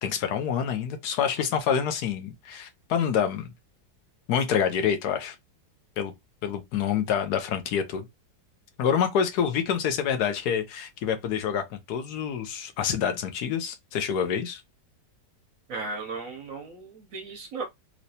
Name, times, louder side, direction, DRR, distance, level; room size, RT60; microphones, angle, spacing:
voice 1, 0.0-3.5 4.3-5.4 6.0-6.1 6.4-8.0 8.8-14.6, left 8 dB, 70° left, 1.1 m, -27 dB
voice 2, 15.7-17.6, right 4 dB, 65° right, 0.9 m, -36 dB
3.1 x 2.9 x 2.7 m
omnidirectional pair, 1.9 m